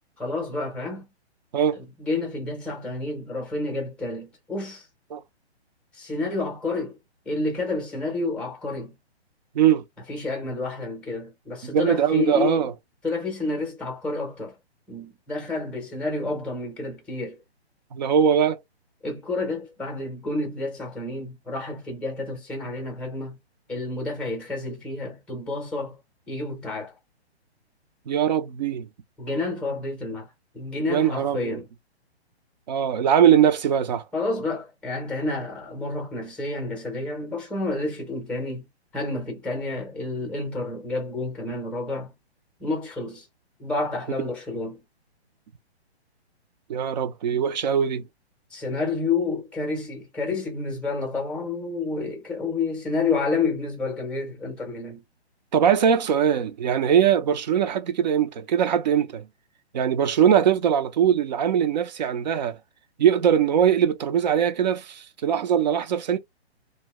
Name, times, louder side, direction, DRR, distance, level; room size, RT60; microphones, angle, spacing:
voice 1, 0.2-1.1 1.7-4.9 5.9-7.0 7.2-8.9 10.1-12.7 13.0-14.5 14.9-17.4 19.0-23.4 23.7-26.0 26.3-26.9 29.2-31.7 34.1-38.6 38.9-42.1 42.6-43.3 43.6-44.8 48.5-55.0, left 3 dB, 5° left, 0.7 m, -29 dB
voice 2, 11.6-12.7 17.9-18.6 28.1-28.9 30.9-31.6 32.7-34.0 46.7-48.0 55.5-59.3 59.7-62.6 63.0-66.2, right 8 dB, 40° right, 0.5 m, -21 dB
2.6 x 2.1 x 3.4 m
hypercardioid pair, 145°, 33 cm